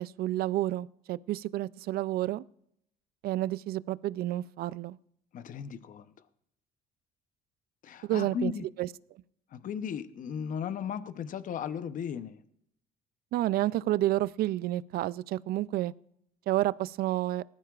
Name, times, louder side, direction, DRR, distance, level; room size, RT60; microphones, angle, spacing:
voice 1, 0.0-2.4 3.2-5.0 8.0-8.5 8.8-8.9 13.3-15.9 16.5-17.4, right 15 dB, 65° right, 0.4 m, -30 dB
voice 2, 5.3-6.1 7.8-8.7 9.5-12.4, left 7 dB, 50° left, 0.8 m, -36 dB
19.5 x 13.0 x 2.4 m
cardioid pair, 110°, 17 cm